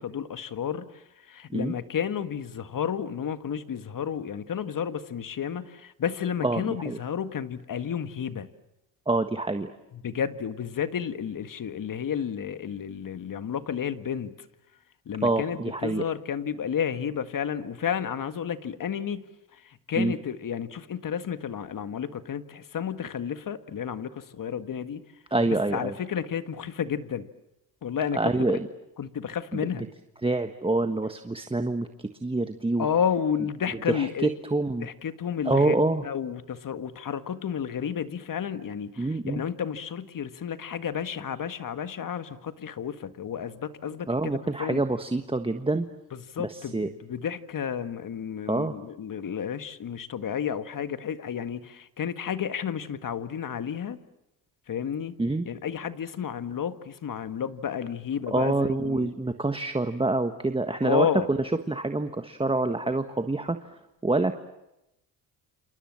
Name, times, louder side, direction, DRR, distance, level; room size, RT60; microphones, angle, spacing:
voice 1, 0.0-8.5 9.9-14.3 15.1-19.3 19.5-25.0 25.4-27.3 27.8-28.6 29.0-29.8 32.8-34.3 34.8-44.8 46.1-54.0 54.7-55.2 55.4-59.1 60.8-61.3, left 8 dB, 45° left, 11 dB, 1.8 m, -31 dB
voice 2, 6.4-7.0 9.1-9.7 15.2-16.1 20.0-20.1 25.3-25.9 28.1-28.7 29.8-29.9 30.2-32.9 33.9-34.9 35.4-36.0 39.0-39.4 44.1-45.9 46.4-46.9 48.5-48.7 55.2-55.5 58.3-61.4 61.7-63.6 64.0-64.4, right 2 dB, 10° right, 8 dB, 1.4 m, -26 dB
28.0 x 28.0 x 7.5 m, 0.89 s
supercardioid pair, 75°, 44 cm